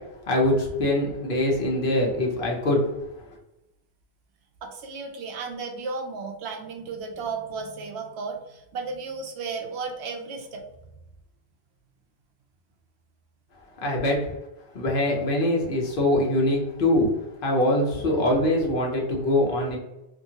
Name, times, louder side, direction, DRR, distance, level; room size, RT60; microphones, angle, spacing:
voice 1, 0.3-2.8 13.8-14.2 14.7-17.1 17.4-19.8, left 1 dB, 55° left, -1 dB, 0.9 m, -23 dB
voice 2, 4.6-10.6, right 4 dB, 80° right, 3 dB, 0.9 m, -34 dB
2.8 x 2.5 x 2.8 m, 0.91 s
omnidirectional pair, 1.1 m